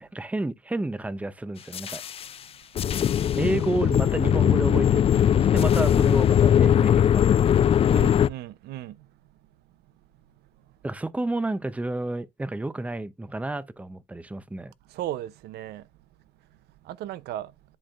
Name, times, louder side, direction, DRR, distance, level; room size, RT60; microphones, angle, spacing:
voice 1, 0.0-2.0 3.4-7.8 10.8-14.7, right 2 dB, 10° right, 0.6 m, -31 dB
sound 1, 1.7-2.3 2.8-8.3, left 9 dB, 35° left, 0.4 m, -20 dB
voice 2, 7.9-8.9 15.0-15.8 16.9-17.5, right 13 dB, 75° right, 0.6 m, -35 dB
10.5 x 4.2 x 2.4 m
cardioid pair, 110°, 17 cm